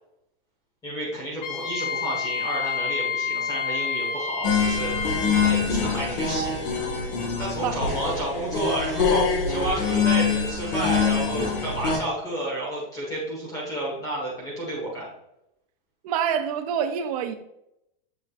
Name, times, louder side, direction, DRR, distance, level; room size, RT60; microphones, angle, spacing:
voice 1, 0.8-4.9 5.4-6.6 7.4-15.1, right 1 dB, 10° left, -5 dB, 1.5 m, -31 dB
Wind instrument woodwind instrument, 1.4-5.5, left 6 dB, 50° left, 1.0 m, -29 dB
sound 1, 4.4-12.0, left 5 dB, 65° left, 1.7 m, -24 dB
voice 2, 16.0-17.3, right 8 dB, 40° right, 8 dB, 0.6 m, -26 dB
7.0 x 5.6 x 2.5 m, 0.83 s
supercardioid pair, 175°, 29 cm